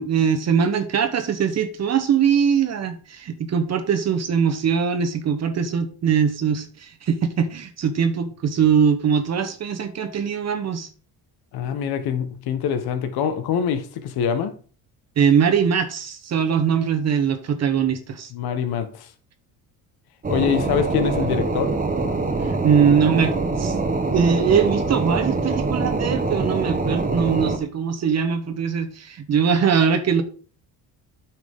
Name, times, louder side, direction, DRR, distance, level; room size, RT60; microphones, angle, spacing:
voice 1, 0.0-10.9 15.2-18.3 22.4-23.8 24.1-30.2, right 7 dB, 40° right, 1.1 m, -21 dB
voice 2, 11.5-14.6 18.3-19.1 20.3-21.8, left 7 dB, 70° left, 1.4 m, -24 dB
sound 1, 20.2-27.6, right 3 dB, 20° right, 1.3 m, -24 dB
8.8 x 6.0 x 3.7 m
cardioid pair, 115°, 39 cm